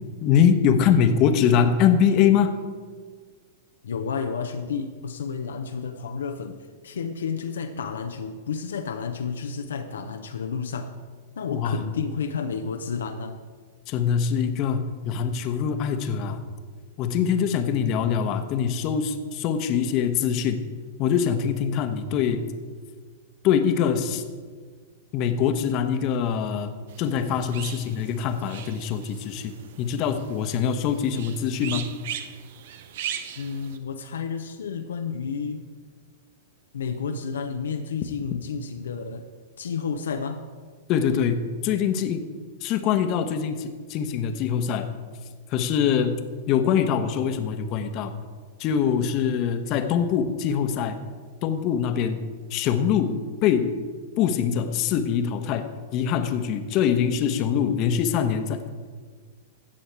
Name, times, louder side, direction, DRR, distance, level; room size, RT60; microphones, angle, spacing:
voice 1, 0.2-2.6 11.5-11.8 13.9-16.4 17.0-20.6 21.0-22.5 23.4-24.2 25.1-26.7 27.0-31.9 40.9-42.2 42.6-44.9 45.5-48.1 48.6-51.1 51.4-52.2 52.5-53.8 54.2-58.9, left 7 dB, 45° left, 8 dB, 1.0 m, -23 dB
voice 2, 3.8-6.6 6.8-10.9 11.4-13.4 33.4-35.7 36.7-39.3 39.6-40.4, left 6 dB, 80° left, 6 dB, 0.7 m, -31 dB
sound 1, 26.9-33.8, right 9 dB, 60° right, 0.8 m, -39 dB
16.0 x 6.4 x 4.6 m, 1.6 s
hypercardioid pair, 110°, 0 cm